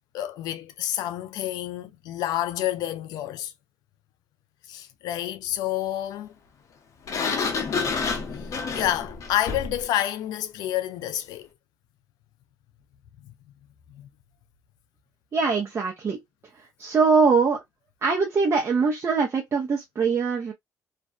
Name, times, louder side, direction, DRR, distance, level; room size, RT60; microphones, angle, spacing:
voice 1, 0.1-3.5 4.7-6.3 8.4-8.5 8.7-11.5 13.9-14.1, left 13 dB, 85° left, 0.4 m, -29 dB
Sliding door, 7.1-9.8, left 5 dB, 55° left, 0.7 m, -28 dB
voice 2, 15.3-16.2 16.8-17.6 18.0-20.5, right 5 dB, 40° right, 0.7 m, -22 dB
2.5 x 2.1 x 2.3 m
cardioid pair, 90°, 7 cm